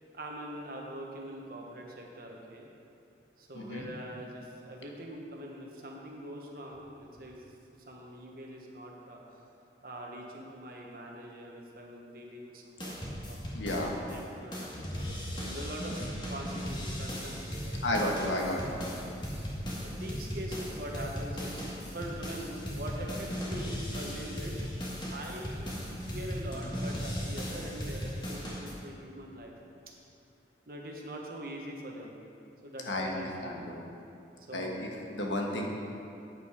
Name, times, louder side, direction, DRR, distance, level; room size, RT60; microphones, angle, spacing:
voice 1, 0.1-2.7 3.4-7.4 7.9-9.2 9.8-13.4 14.0-19.2 19.8-21.6 21.9-24.6 25.1-29.5 30.7-32.2 32.6-33.7 34.4-34.9, right 1 dB, 50° right, -1 dB, 1.3 m, -43 dB
voice 2, 3.5-3.9 13.5-13.9 17.8-18.9 32.8-33.7 34.5-34.7 35.1-35.7, left 1 dB, 85° left, 0 dB, 1.4 m, -32 dB
sound 1, 12.8-14.2 14.5-28.7, equal, 25° left, 1.6 m, -37 dB
8.9 x 8.7 x 5.1 m, 2.7 s
head